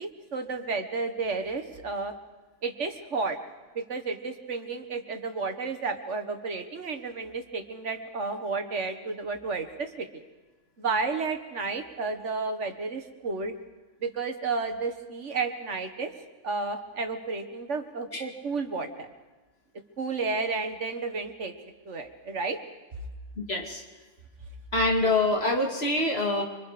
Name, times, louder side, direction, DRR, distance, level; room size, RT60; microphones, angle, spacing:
voice 1, 0.0-2.1 2.6-3.4 3.8-10.1 10.8-13.5 14.0-16.1 16.4-19.1 20.0-21.5 21.9-22.6, right 4 dB, 75° right, 7 dB, 1.9 m, -32 dB
voice 2, 23.4-23.8 24.7-26.4, left 2 dB, 55° left, 2 dB, 2.8 m, -25 dB
26.0 x 25.5 x 5.1 m, 1.2 s
omnidirectional pair, 1.2 m